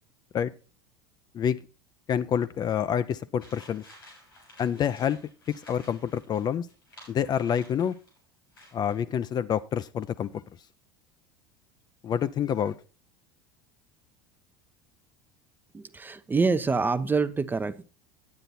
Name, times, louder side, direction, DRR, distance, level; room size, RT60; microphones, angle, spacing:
voice 1, 2.1-3.8 4.6-5.2 5.7-6.7 7.1-7.9 8.7-10.4 12.0-12.7, left 8 dB, 35° left, 0.5 m, -27 dB
sound 1, 3.4-8.2 8.5-9.0, left 1 dB, 90° left, 6.7 m, -53 dB
voice 2, 15.7-17.8, right 4 dB, 15° right, 0.6 m, -26 dB
9.6 x 8.9 x 4.1 m
hypercardioid pair, 75°, 12 cm